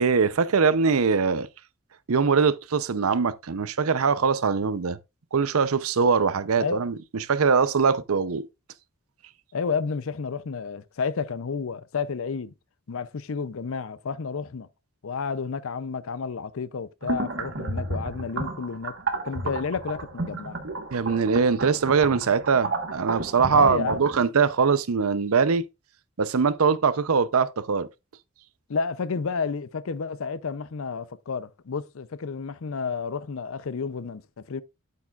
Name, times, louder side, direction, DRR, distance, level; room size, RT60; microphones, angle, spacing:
voice 1, 0.0-1.5 2.1-5.0 5.3-6.9 7.3-8.5 20.9-25.6 26.2-27.9, right 5 dB, 80° right, 0.6 m, -22 dB
voice 2, 9.5-12.5 12.9-14.7 15.0-19.0 19.2-20.6 23.5-24.0 28.7-34.6, left 5 dB, 70° left, 0.5 m, -31 dB
sound 1, 17.0-24.2, right 3 dB, 60° right, 1.3 m, -32 dB
8.5 x 8.4 x 2.4 m
head